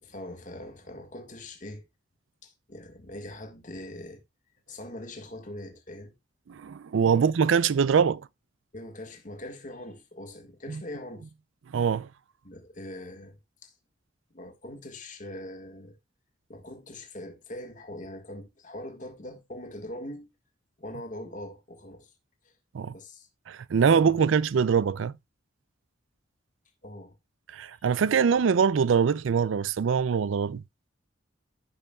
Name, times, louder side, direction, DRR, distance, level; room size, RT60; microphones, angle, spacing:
voice 1, 0.0-1.8 2.4-4.2 4.7-6.1 7.1-7.2 8.7-11.3 12.4-13.7 14.3-16.0 16.5-20.3 20.8-22.1 22.9-23.3 23.8-24.3 26.8-27.2, left 1 dB, 40° left, 1.6 m, -42 dB
voice 2, 6.5-8.2 10.7-10.8 11.7-12.1 22.7-22.9 23.5-25.1 27.5-30.6, right 6 dB, 85° right, 0.4 m, -23 dB
15.0 x 5.4 x 2.3 m
head